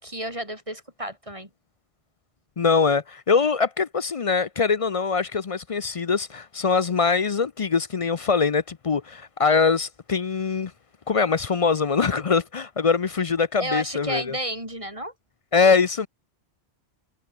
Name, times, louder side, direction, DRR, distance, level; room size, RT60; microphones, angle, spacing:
voice 1, 0.0-1.5 13.6-15.1, right 1 dB, 30° right, 6.7 m, -31 dB
voice 2, 2.6-10.7 11.1-14.4 15.5-16.1, left 5 dB, 40° left, 0.5 m, -23 dB
omnidirectional pair, 1.1 m